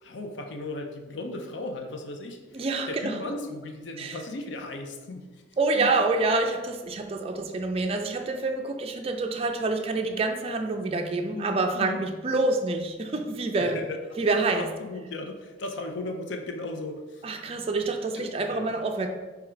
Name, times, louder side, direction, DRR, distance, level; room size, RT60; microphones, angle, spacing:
voice 1, 0.0-5.3 5.8-5.9 11.3-12.0 13.5-14.0 14.5-17.2 18.2-18.6, left 2 dB, 75° left, 4 dB, 0.5 m, -36 dB
voice 2, 2.5-3.3 4.0-4.2 5.6-13.8 14.2-14.7 17.2-19.1, right 3 dB, 30° right, 4 dB, 0.4 m, -27 dB
4.8 x 2.3 x 4.3 m, 1.2 s
head